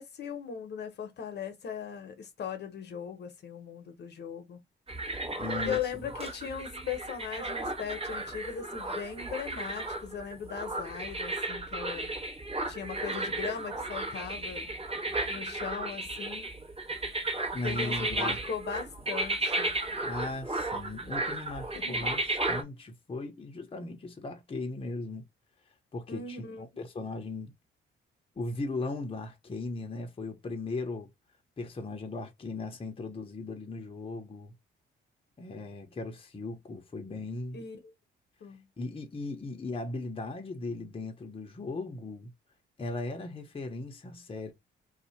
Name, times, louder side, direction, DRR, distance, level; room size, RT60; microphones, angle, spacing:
voice 1, 0.0-4.6 5.6-12.1 12.7-14.7 15.3-16.5 17.6-19.7 21.7-22.1 26.1-26.7 37.5-37.9 38.4-38.7, left 7 dB, 60° left, 0.9 m, -38 dB
sound 1, 4.9-22.6, right 2 dB, 30° right, 1.3 m, -34 dB
voice 2, 5.4-5.8 17.5-18.4 20.0-22.2 22.5-25.3 25.9-27.5 28.4-31.1 31.6-34.5 35.4-37.6 38.8-42.3 42.8-44.5, left 2 dB, 30° left, 0.9 m, -37 dB
2.7 x 2.4 x 4.2 m
cardioid pair, 90°, 20 cm